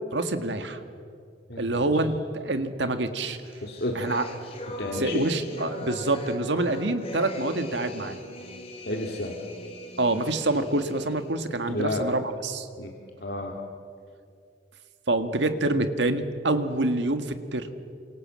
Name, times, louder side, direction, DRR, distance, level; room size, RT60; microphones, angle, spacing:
voice 1, 0.1-0.8 1.6-3.4 4.0-4.2 4.9-8.2 10.0-12.7 15.1-17.7, right 2 dB, 75° right, 8 dB, 1.8 m, -26 dB
voice 2, 1.5-1.9 3.6-3.9 4.8-5.2 8.9-9.3 11.7-12.1 12.8-12.9 13.2-13.6, left 1 dB, 60° left, 0 dB, 2.2 m, -31 dB
sound 1, 3.4-11.3, left 1 dB, 30° left, 3.7 m, -40 dB
29.0 x 26.0 x 7.6 m, 2.3 s
head